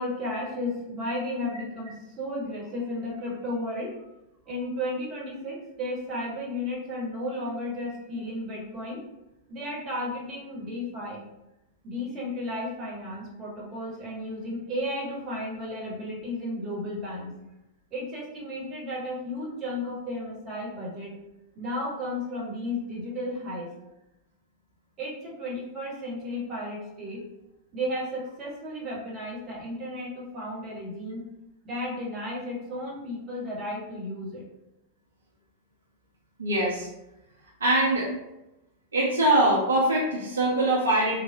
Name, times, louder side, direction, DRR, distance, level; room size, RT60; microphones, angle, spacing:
voice 1, 0.0-4.1 4.5-9.0 9.5-11.2 11.8-17.3 17.9-21.2 21.5-23.7 25.0-27.2 27.7-31.3 31.6-34.4, left 1 dB, 30° right, -4 dB, 1.0 m, -33 dB
voice 2, 36.4-36.9 37.6-38.1 38.9-41.2, right 1 dB, 70° right, -4 dB, 0.5 m, -23 dB
3.1 x 2.0 x 2.6 m, 0.91 s
figure-of-eight pair, 90°, 0 cm